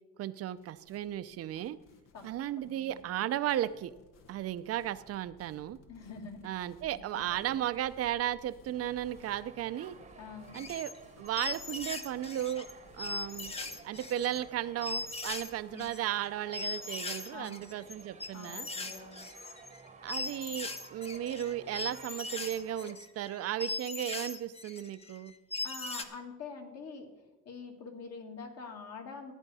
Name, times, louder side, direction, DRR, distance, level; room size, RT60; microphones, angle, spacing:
voice 1, 0.2-1.8 2.2-3.9 4.3-5.8 6.4-10.0 10.5-10.9 11.2-12.7 12.9-13.5 13.8-18.7 20.0-25.3, right 12 dB, 50° right, 14 dB, 0.5 m, -35 dB
sound 1, 0.5-15.9, left 3 dB, 80° left, 1.5 m, -60 dB
voice 2, 2.6-3.0 5.9-6.5 7.1-7.6 10.2-10.6 15.7-15.9 17.3-17.6 18.3-19.2 25.6-27.1 27.5-29.3, left 4 dB, 55° left, 2 dB, 2.1 m, -45 dB
sound 2, 8.7-23.0, right 4 dB, 20° right, 0.9 m, -54 dB
sound 3, 10.5-11.0 11.3-12.7 13.0-14.4 14.8-15.5 15.8-26.0, left 3 dB, 20° left, 0.8 m, -39 dB
14.5 x 10.0 x 4.2 m, 1.1 s
cardioid pair, 140°, 32 cm